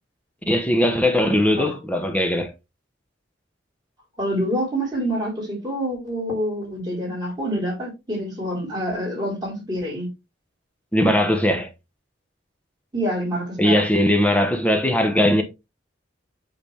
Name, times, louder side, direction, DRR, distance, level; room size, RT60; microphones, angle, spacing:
voice 1, 0.5-2.5 10.9-11.7 13.6-15.4, left 1 dB, 10° left, 1.0 m, -19 dB
voice 2, 4.2-10.1 12.9-13.9, equal, 25° right, 4.2 m, -27 dB
8.5 x 4.0 x 3.3 m
head